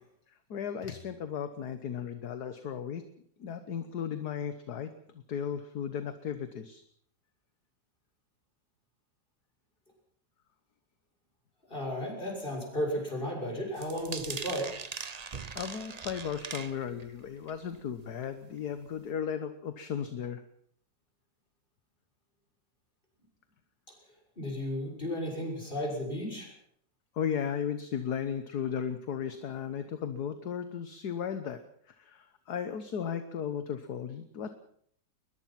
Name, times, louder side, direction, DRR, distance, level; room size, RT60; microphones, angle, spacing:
voice 1, 0.3-3.0 3.4-6.8 15.5-20.4 27.1-31.6 31.8-34.5, left 8 dB, 60° left, 10 dB, 1.7 m, -35 dB
voice 2, 11.7-14.8 24.4-26.5, equal, 30° left, 1 dB, 7.0 m, -34 dB
sound 1, 13.8-17.1 17.5-17.8 18.2-18.3 18.6-18.7, right 5 dB, 40° right, 0.5 m, -41 dB
21.5 x 21.5 x 5.9 m, 0.64 s
omnidirectional pair, 2.0 m